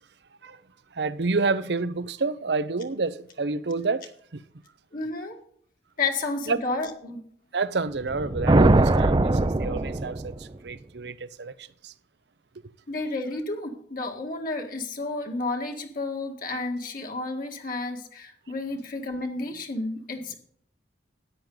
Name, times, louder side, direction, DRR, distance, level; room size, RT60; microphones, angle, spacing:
voice 1, 0.9-4.4 6.5-6.6 7.5-11.9, right 3 dB, 70° right, 0.7 m, -29 dB
voice 2, 4.9-5.4 6.0-7.2 12.9-20.3, left 3 dB, 50° left, 1.8 m, -31 dB
sound 1, 8.0-10.5, right 2 dB, 25° right, 0.5 m, -21 dB
13.5 x 9.5 x 3.9 m
head